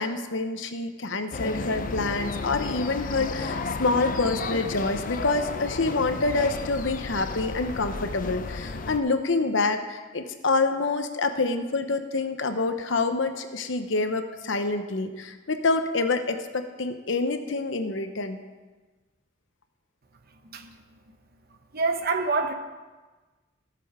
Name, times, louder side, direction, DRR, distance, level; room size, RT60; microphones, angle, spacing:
voice 1, 0.0-18.4, left 3 dB, 65° left, 8 dB, 0.9 m, -27 dB
sound 1, 1.3-9.0, left 3 dB, 40° left, 0.6 m, -33 dB
voice 2, 21.7-22.5, right 3 dB, 50° right, 7 dB, 0.9 m, -26 dB
15.0 x 6.9 x 4.8 m, 1.3 s
head